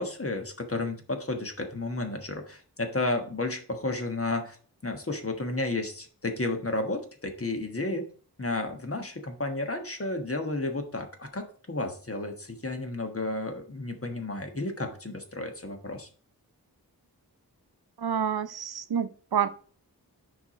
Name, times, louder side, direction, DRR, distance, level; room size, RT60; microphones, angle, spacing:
voice 1, 0.0-4.6 4.8-8.0 8.4-16.1, left 2 dB, 35° left, 1.4 m, -32 dB
voice 2, 18.0-19.5, right 8 dB, 75° right, 0.7 m, -28 dB
7.2 x 4.8 x 4.9 m
wide cardioid pair, 80°, 38 cm